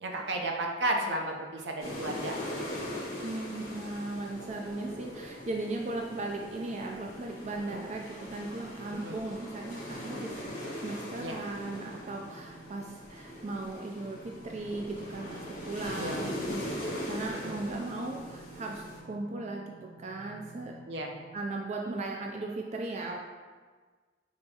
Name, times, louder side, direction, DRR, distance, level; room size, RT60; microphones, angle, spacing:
voice 1, 0.0-2.3 7.7-7.8 8.9-9.2 11.2-11.4 16.0-16.2 17.3-17.5 20.9-21.1, right 1 dB, 75° right, 1 dB, 0.6 m, -33 dB
sound 1, 1.8-19.0, left 1 dB, 50° left, 1.2 m, -41 dB
voice 2, 3.2-20.7 21.3-23.3, right 2 dB, 40° right, 1 dB, 0.3 m, -37 dB
sound 2, 3.7-21.4, right 3 dB, 30° left, 1.5 m, -53 dB
5.5 x 3.0 x 2.8 m, 1.4 s
head